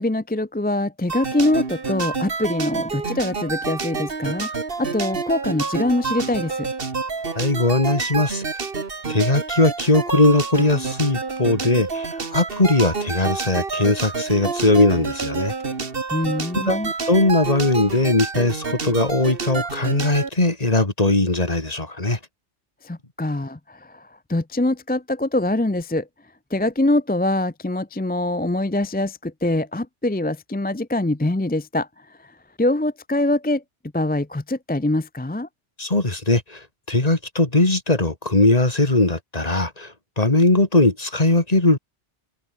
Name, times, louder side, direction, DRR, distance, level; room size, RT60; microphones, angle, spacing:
voice 1, 0.0-4.5 4.8-6.7 16.1-16.9 22.8-26.1 26.5-31.9 32.6-33.6 33.9-35.5, left 1 dB, 10° left, 0.5 m, -23 dB
sound 1, 1.1-20.3, right 4 dB, 55° right, 2.0 m, -28 dB
voice 2, 7.4-8.4 9.1-15.5 16.7-16.8 17.1-22.2 35.8-36.6 36.9-41.8, left 2 dB, 35° left, 2.8 m, -19 dB
omnidirectional pair, 1.2 m